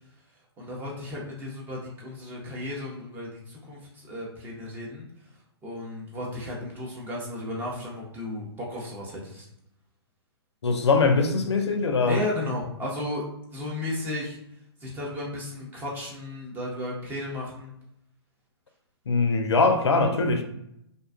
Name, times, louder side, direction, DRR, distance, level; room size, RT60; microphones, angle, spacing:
voice 1, 0.6-5.1 5.6-9.5 12.0-13.2 13.5-14.4 14.8-17.7 20.3-20.4, left 1 dB, 15° right, 0.6 m, -34 dB
voice 2, 10.6-12.2 19.1-20.4, left 4 dB, 75° left, 0.4 m, -22 dB
2.5 x 2.3 x 2.3 m
figure-of-eight pair, 125°, 14 cm